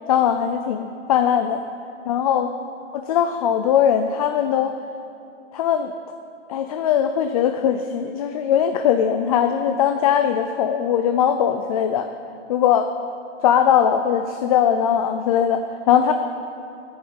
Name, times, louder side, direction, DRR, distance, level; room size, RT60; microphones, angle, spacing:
voice 1, 0.1-1.6 2.1-2.5 2.9-4.8 5.5-5.9 6.5-12.1 12.5-12.9 13.4-16.1, left 9 dB, 30° left, 7 dB, 0.4 m, -20 dB
11.0 x 10.0 x 8.7 m, 2.8 s
hypercardioid pair, 155°, 37 cm